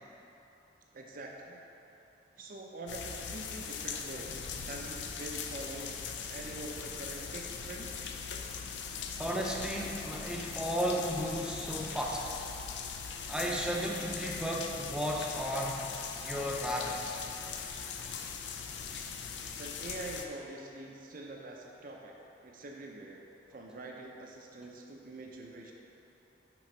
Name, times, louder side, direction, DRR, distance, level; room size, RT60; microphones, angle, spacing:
voice 1, 0.9-1.6 2.4-5.9 6.3-8.1 19.6-22.1 22.4-23.2 23.5-25.7, right 2 dB, 55° right, 0 dB, 0.6 m, -45 dB
sound 1, 2.9-20.3, left 6 dB, 85° left, 0.5 m, -40 dB
voice 2, 9.2-12.3 13.3-15.8 16.2-17.1, equal, 5° right, -2 dB, 0.6 m, -34 dB
6.1 x 4.9 x 4.4 m, 2.9 s
head